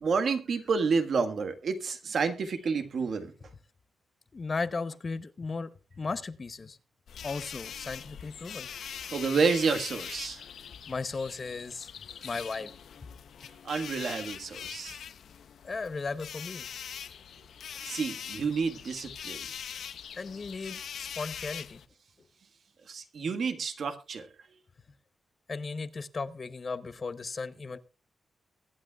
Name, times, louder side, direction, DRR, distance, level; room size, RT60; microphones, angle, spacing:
voice 1, 0.0-3.3 9.1-10.4 13.6-15.0 17.8-19.5 22.9-24.3, right 5 dB, 65° right, 1.5 m, -29 dB
voice 2, 4.3-6.8 7.2-8.7 10.9-11.9 12.2-12.7 15.6-16.7 20.2-21.8 25.5-27.8, left 4 dB, 40° left, 0.7 m, -36 dB
sound 1, 7.1-21.9, left 8 dB, 80° left, 0.7 m, -42 dB
22.5 x 8.8 x 2.3 m
cardioid pair, 105°, 0 cm